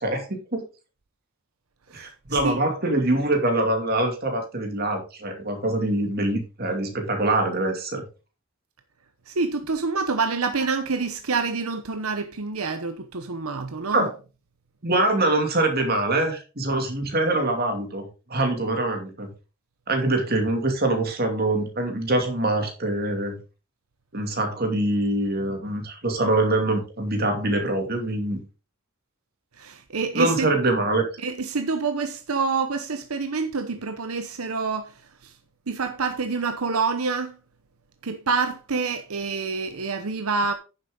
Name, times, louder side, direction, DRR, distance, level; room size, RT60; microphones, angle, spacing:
voice 1, 0.0-0.6 1.9-8.0 13.9-14.1 14.8-19.3 19.9-23.4 24.1-28.4 30.1-31.0, right 2 dB, 45° right, 2.6 m, -24 dB
voice 2, 9.3-14.1 29.6-30.5 31.2-34.9 35.7-37.3 38.0-40.5, right 4 dB, 85° right, 0.9 m, -27 dB
9.9 x 7.5 x 3.8 m
head